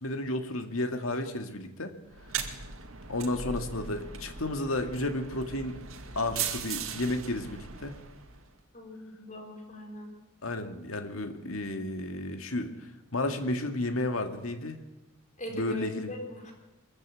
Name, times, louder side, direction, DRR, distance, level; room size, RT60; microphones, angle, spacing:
voice 1, 0.0-1.9 3.1-5.8 6.2-8.0 10.4-14.8 15.5-16.1, left 2 dB, 80° left, 6 dB, 2.1 m, -32 dB
sound 1, 2.1-8.5, right 7 dB, 80° right, 2.2 m, -38 dB
voice 2, 8.7-10.1 15.4-16.5, left 1 dB, 35° left, 3 dB, 4.2 m, -39 dB
24.0 x 15.0 x 8.5 m, 0.98 s
head